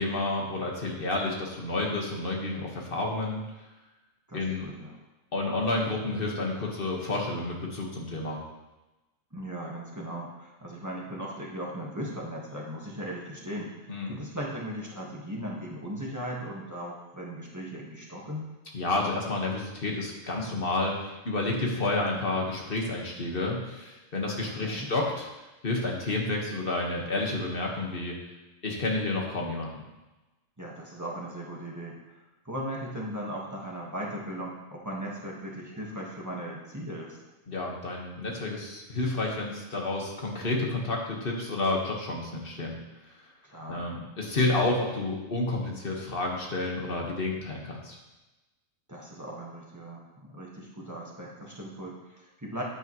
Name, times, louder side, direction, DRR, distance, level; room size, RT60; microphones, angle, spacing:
voice 1, 0.0-3.5 4.3-4.7 5.3-8.4 13.9-14.2 18.7-25.3 25.6-28.2 28.6-29.8 37.5-42.8 43.7-48.0, left 2 dB, 45° left, -1 dB, 1.6 m, -30 dB
voice 2, 4.3-5.0 9.3-18.5 24.6-24.9 30.6-32.0 32.4-37.2 43.4-43.9 48.9-52.6, equal, 15° right, -3 dB, 1.5 m, -38 dB
9.2 x 9.1 x 3.1 m, 1.1 s
omnidirectional pair, 1.4 m